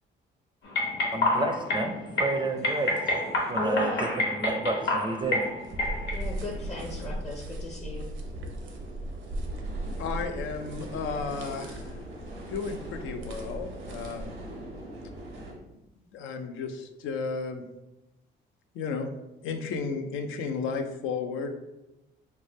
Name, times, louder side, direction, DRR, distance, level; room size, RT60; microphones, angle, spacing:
sound 1, 0.6-7.1, left 1 dB, 65° left, 1.1 m, -29 dB
voice 1, 1.1-3.0 3.5-5.5, right 2 dB, 25° right, 4 dB, 0.4 m, -30 dB
voice 2, 3.4-4.0 6.1-8.1, left 3 dB, 35° left, 1 dB, 0.6 m, -36 dB
sound 2, 5.2-14.3, right 1 dB, 75° right, 0.6 m, -38 dB
sound 3, 6.0-15.5, right 1 dB, 90° right, 1.1 m, -43 dB
voice 3, 10.0-12.0 12.5-14.3 16.1-17.6 18.7-19.1 19.4-21.5, left 5 dB, 90° left, 6 dB, 0.4 m, -33 dB
3.2 x 2.1 x 4.0 m, 0.95 s
cardioid pair, 90°, 20 cm